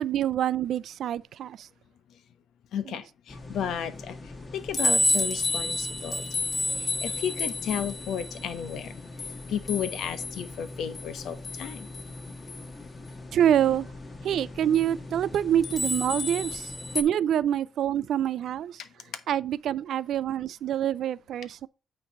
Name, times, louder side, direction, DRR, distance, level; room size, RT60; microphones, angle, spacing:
voice 1, 0.0-1.7 2.9-3.0 13.3-13.9 14.2-18.8 19.3-21.7, right 10 dB, 70° right, 0.4 m, -26 dB
voice 2, 2.7-6.3 6.7-11.9 18.8-19.2, left 8 dB, 75° left, 1.0 m, -34 dB
sound 1, 3.3-17.0, left 2 dB, 30° left, 1.8 m, -32 dB
8.9 x 3.3 x 5.3 m
cardioid pair, 90°, 0 cm